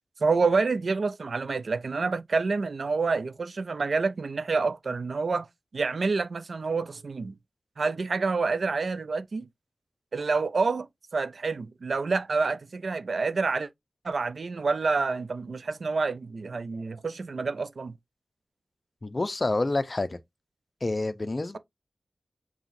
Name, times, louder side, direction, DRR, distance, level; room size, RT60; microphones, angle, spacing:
voice 1, 0.2-5.5 5.7-7.3 7.8-9.5 10.1-10.9 11.1-13.7 14.0-18.0, right 4 dB, 75° right, 0.4 m, -28 dB
voice 2, 19.0-20.2 20.8-21.6, left 2 dB, 40° left, 0.6 m, -28 dB
5.5 x 2.9 x 2.6 m
wide cardioid pair, 95°, 0 cm